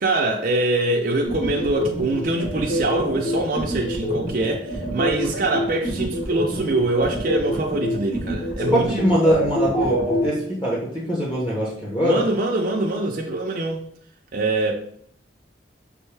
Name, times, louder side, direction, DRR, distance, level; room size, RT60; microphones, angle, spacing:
voice 1, 0.0-9.1 12.0-13.8 14.3-14.7, right 2 dB, 50° right, 0.5 m, -24 dB
sound 1, 1.2-10.2, equal, 50° left, 1.6 m, -26 dB
voice 2, 8.8-12.2, equal, 25° left, 1.0 m, -22 dB
5.3 x 2.6 x 3.3 m
head